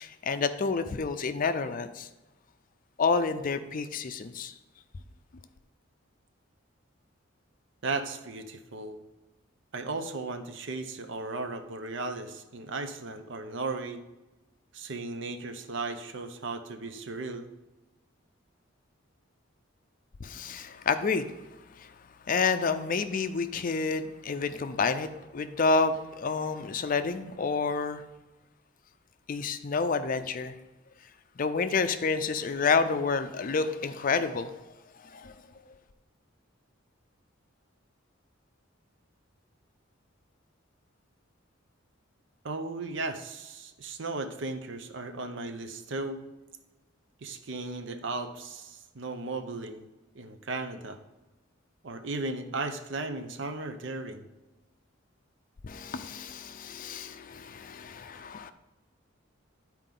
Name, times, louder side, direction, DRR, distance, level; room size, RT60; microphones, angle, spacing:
voice 1, 0.0-2.1 3.0-4.5 20.2-21.3 21.8-21.9 22.3-25.1 25.3-28.0 29.3-30.5 31.4-34.5 35.1-35.3 55.6-58.5, left 4 dB, 40° left, 10 dB, 0.4 m, -29 dB
voice 2, 7.8-9.0 9.7-14.0 14.7-17.5 42.4-46.2 47.2-49.9 50.1-51.0 51.8-54.2, right 3 dB, 60° right, 8 dB, 0.7 m, -36 dB
11.0 x 4.5 x 3.8 m, 1.1 s
head